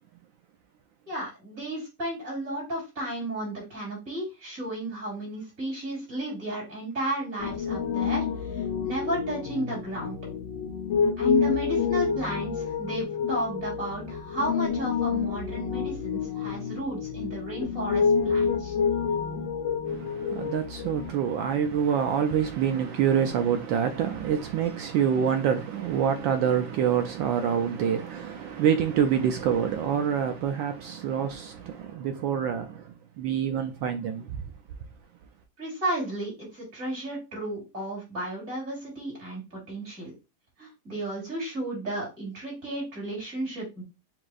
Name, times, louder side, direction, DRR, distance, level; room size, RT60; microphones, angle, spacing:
voice 1, 1.1-8.3 8.5-10.2 11.2-18.7 35.6-40.1 40.6-43.8, right 1 dB, 35° right, 3.3 m, -33 dB
Piano, 7.4-21.1, left 6 dB, 60° left, 0.8 m, -28 dB
voice 2, 19.9-34.4, right 8 dB, 75° right, 1.1 m, -26 dB
7.4 x 2.8 x 2.4 m
omnidirectional pair, 2.4 m